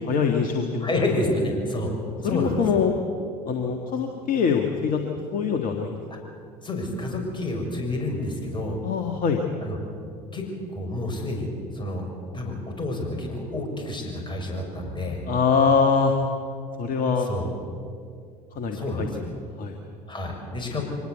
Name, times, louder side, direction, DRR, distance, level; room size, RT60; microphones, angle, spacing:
voice 1, 0.1-0.9 2.2-2.9 3.5-5.0 5.3-5.9 8.8-9.4 15.3-16.1 16.8-17.3 18.6-19.2 19.6-19.7, left 6 dB, 45° left, 4 dB, 2.0 m, -23 dB
voice 2, 0.8-1.9 2.2-2.6 6.6-8.8 9.6-9.8 10.3-11.5 11.7-12.1 12.3-15.2 17.2-17.5 18.7-19.2 20.1-20.8, left 1 dB, 25° left, 2 dB, 6.5 m, -29 dB
24.5 x 19.0 x 8.1 m, 2.3 s
figure-of-eight pair, 65°, 20 cm